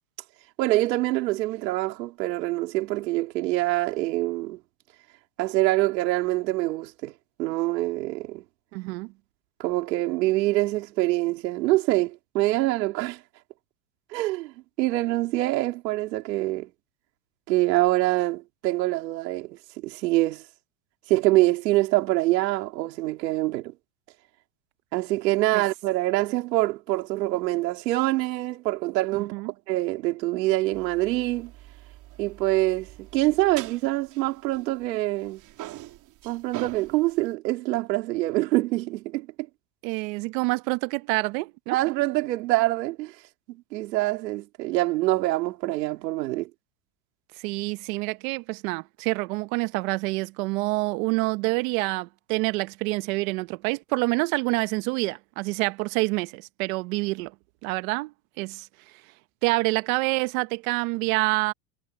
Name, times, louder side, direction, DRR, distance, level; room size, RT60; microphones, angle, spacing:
voice 1, 0.6-4.6 5.4-7.1 7.4-8.4 9.6-13.2 14.1-14.5 14.8-16.7 17.5-20.4 21.1-23.7 24.9-31.5 32.2-35.4 36.2-39.3 41.7-43.1 43.5-46.5, right 18 dB, 85° right, 4.0 m, -25 dB
voice 2, 8.7-9.1 25.5-25.6 29.3-29.5 39.8-41.8 47.4-57.3 57.6-58.7 59.4-61.5, right 25 dB, 55° right, 1.1 m, -27 dB
sound 1, 30.7-35.0 35.2-37.3, right 16 dB, 35° right, 3.4 m, -44 dB
supercardioid pair, 160°, 49 cm